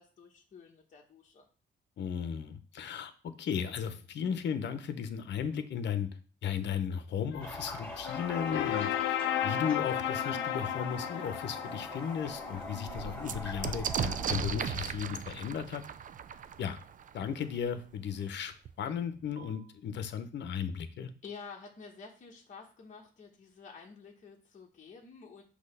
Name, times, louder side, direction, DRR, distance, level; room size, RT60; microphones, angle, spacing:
voice 1, 0.0-1.5 21.2-25.4, left 5 dB, 40° left, -1 dB, 1.0 m, -50 dB
voice 2, 2.0-3.1 3.4-6.1 6.4-9.2 9.4-15.8 16.6-16.8 17.1-18.5 18.8-21.1, left 8 dB, 65° left, 10 dB, 0.8 m, -35 dB
sound 1, 7.3-13.2, left 11 dB, 85° left, 0.5 m, -34 dB
Toilet flush, 7.4-14.3, left 1 dB, 5° left, 2.2 m, -43 dB
sound 2, 11.2-11.3 11.8-11.9 12.1-17.7 18.6-18.7 19.0-19.6, right 8 dB, 40° right, 0.4 m, -37 dB
6.2 x 2.9 x 5.5 m, 0.39 s
cardioid pair, 90°, 20 cm